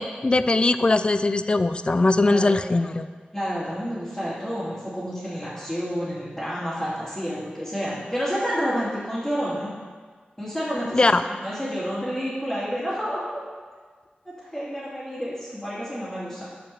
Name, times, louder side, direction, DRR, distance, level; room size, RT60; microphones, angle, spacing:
voice 1, 0.0-3.1 10.9-11.2, left 2 dB, 30° left, 12 dB, 0.4 m, -20 dB
voice 2, 3.3-9.7 10.4-13.4 14.4-16.5, equal, 5° left, -11 dB, 2.7 m, -29 dB
8.5 x 5.2 x 6.7 m, 1.5 s
wide cardioid pair, 80°, 3 cm